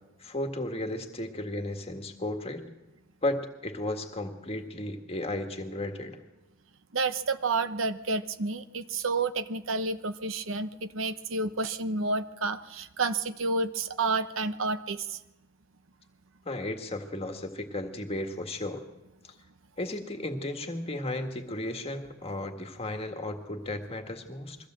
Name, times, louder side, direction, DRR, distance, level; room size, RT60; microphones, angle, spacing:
voice 1, 0.2-2.7 3.2-6.2 16.5-18.8 19.2-19.3 19.8-24.6, left 1 dB, 30° left, 5 dB, 1.8 m, -34 dB
voice 2, 6.9-15.0, right 3 dB, 70° right, 11 dB, 0.9 m, -30 dB
22.5 x 15.5 x 7.6 m, 1.0 s
head